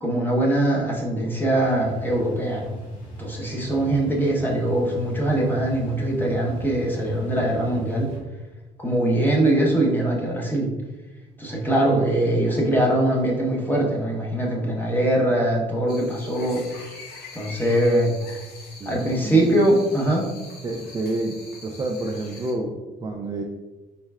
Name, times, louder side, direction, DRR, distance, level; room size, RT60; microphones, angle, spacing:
voice 1, 0.0-2.8 3.2-8.1 8.8-10.7 11.4-16.6 17.3-18.2 18.8-20.3, right 1 dB, 10° left, -2 dB, 0.9 m, -22 dB
sound 1, 1.6-8.2, left 1 dB, 50° left, 1.2 m, -38 dB
sound 2, 15.9-22.5, left 3 dB, 75° left, 0.9 m, -44 dB
voice 2, 18.8-19.4 20.6-23.4, right 2 dB, 20° right, 0 dB, 0.3 m, -29 dB
4.4 x 3.2 x 2.3 m, 1.1 s
cardioid pair, 110°, 17 cm